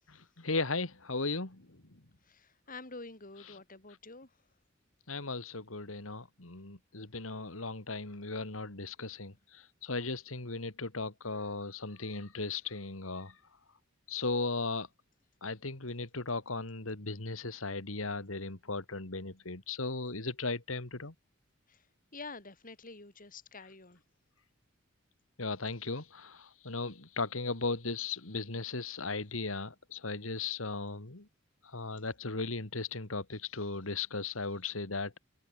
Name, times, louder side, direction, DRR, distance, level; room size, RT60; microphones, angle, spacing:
voice 1, 0.1-1.8 3.4-3.6 5.1-13.4 14.1-14.9 15.4-21.1 25.4-31.3 31.6-35.2, left 3 dB, 85° left, 2.5 m, -37 dB
voice 2, 2.3-4.3 21.7-21.8 22.1-24.0, left 3 dB, 45° left, 5.6 m, -48 dB
head